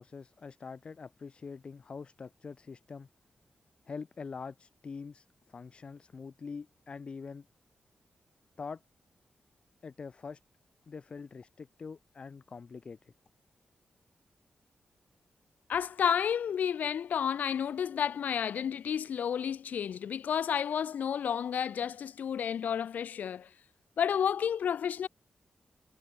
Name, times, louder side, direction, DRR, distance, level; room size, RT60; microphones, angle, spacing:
voice 1, 0.0-3.1 3.9-7.5 8.6-8.8 9.8-10.4 10.9-13.1, left 5 dB, 40° left, 0.8 m, -44 dB
voice 2, 15.7-23.5 24.0-25.1, left 8 dB, 75° left, 0.4 m, -31 dB
wide cardioid pair, 165°, 3 cm